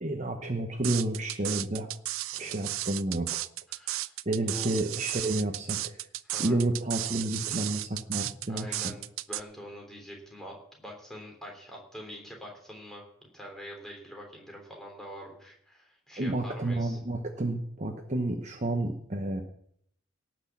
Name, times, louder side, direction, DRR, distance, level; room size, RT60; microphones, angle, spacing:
voice 1, 0.0-1.9 2.4-3.3 4.3-6.0 6.4-8.8 16.2-19.4, right 2 dB, 35° right, 4 dB, 1.0 m, -30 dB
sound 1, 0.8-9.4, right 16 dB, 75° right, 0.4 m, -34 dB
voice 2, 2.3-2.7 3.7-4.1 4.4-4.7 6.2-6.7 8.2-13.0 13.3-17.0, equal, ahead, 0 dB, 3.4 m, -45 dB
18.0 x 6.2 x 7.3 m, 0.69 s
head